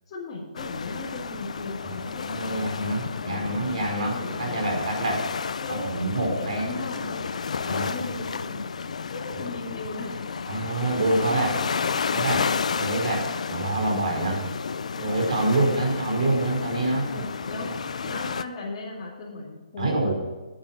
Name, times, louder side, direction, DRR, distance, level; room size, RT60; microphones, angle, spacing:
voice 1, 0.1-5.2 5.6-5.9 6.2-8.8 9.1-10.2 11.3-11.9 15.4-15.9 17.0-17.7 18.0-20.1, left 3 dB, 25° left, -9 dB, 2.5 m, -37 dB
sound 1, 0.6-18.4, left 5 dB, 65° left, 0.6 m, -32 dB
voice 2, 2.2-5.3 5.7-6.8 7.6-8.1 9.3-9.4 10.5-11.5 12.1-12.5 12.7-14.5 15.0-17.2 17.5-17.6 19.8-20.1, right 2 dB, 60° right, 1 dB, 4.9 m, -26 dB
10.5 x 9.7 x 6.1 m, 1.2 s
hypercardioid pair, 175°, 4 cm